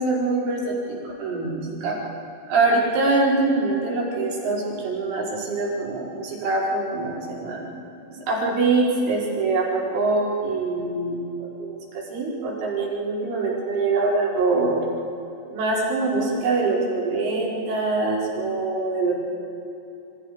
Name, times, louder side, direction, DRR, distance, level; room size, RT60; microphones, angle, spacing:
voice 1, 0.0-2.0 2.5-7.6 8.3-14.8 15.5-19.1, right 3 dB, 70° right, -4 dB, 7.3 m, -24 dB
28.0 x 26.5 x 5.1 m, 2.9 s
omnidirectional pair, 5.8 m